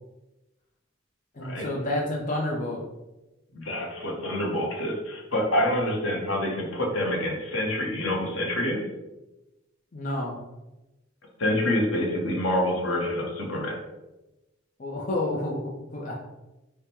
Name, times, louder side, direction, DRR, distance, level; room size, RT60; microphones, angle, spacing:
voice 1, 1.3-2.8 9.9-10.4 14.8-16.1, left 1 dB, 40° left, -2 dB, 0.5 m, -29 dB
voice 2, 3.5-8.8 11.4-13.8, left 1 dB, 80° left, 0 dB, 0.9 m, -27 dB
3.6 x 2.1 x 4.2 m, 1.0 s
head